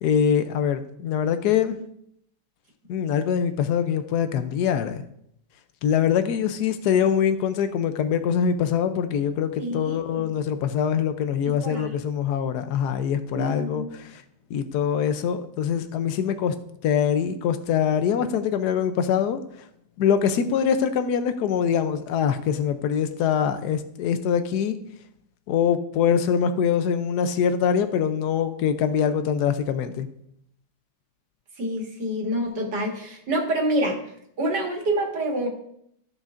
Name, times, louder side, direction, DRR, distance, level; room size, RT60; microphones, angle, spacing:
voice 1, 0.0-1.8 2.9-5.0 5.8-14.2 14.5-16.5 16.8-19.7 20.0-24.8 25.5-30.1, left 8 dB, 85° left, 9 dB, 0.8 m, -24 dB
voice 2, 9.6-10.2 11.6-12.0 13.3-13.9 31.6-34.0 34.4-35.5, right 1 dB, 50° right, -1 dB, 2.2 m, -27 dB
14.5 x 6.5 x 2.5 m, 0.72 s
omnidirectional pair, 2.4 m